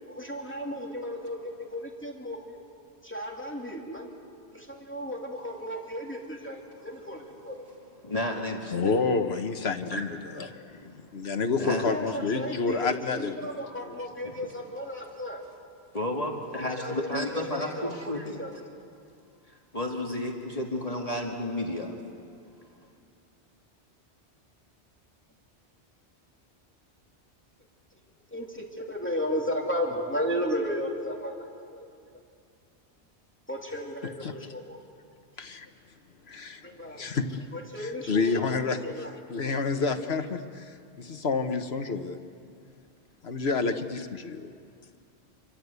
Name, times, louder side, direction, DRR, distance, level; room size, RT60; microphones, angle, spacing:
voice 1, 0.1-2.6 3.0-4.1 4.5-7.6 11.6-15.4 16.6-18.5 28.3-31.9 33.5-34.8 36.6-37.0 37.5-39.1, equal, 10° left, -1 dB, 2.9 m, -34 dB
voice 2, 8.0-9.0 9.8-11.1 11.6-11.9 12.2-12.3 14.2-14.4 15.9-18.6 19.7-22.0, left 1 dB, 30° left, 0 dB, 2.1 m, -33 dB
voice 3, 8.7-10.5 11.0-13.9 34.2-34.3 35.4-35.7 36.3-37.5 37.8-42.2 43.2-44.3, left 4 dB, 65° left, 7 dB, 1.5 m, -29 dB
27.5 x 23.5 x 8.2 m, 2.4 s
omnidirectional pair, 1.2 m